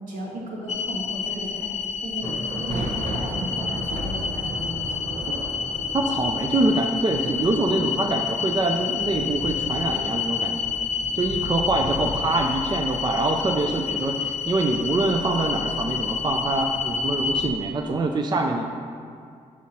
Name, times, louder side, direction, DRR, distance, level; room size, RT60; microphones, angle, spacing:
voice 1, 0.1-1.7 2.0-2.3 2.6-5.3, right 1 dB, 85° right, -4 dB, 1.7 m, -35 dB
sound 1, 0.7-17.5, left 6 dB, 55° left, 0.7 m, -29 dB
sound 2, 2.2-17.6, right 1 dB, 55° right, 1.0 m, -37 dB
voice 2, 5.9-10.7 11.1-18.6, right 2 dB, 30° right, 3 dB, 0.5 m, -24 dB
6.1 x 5.6 x 4.3 m, 2.3 s
cardioid pair, 85°, 14 cm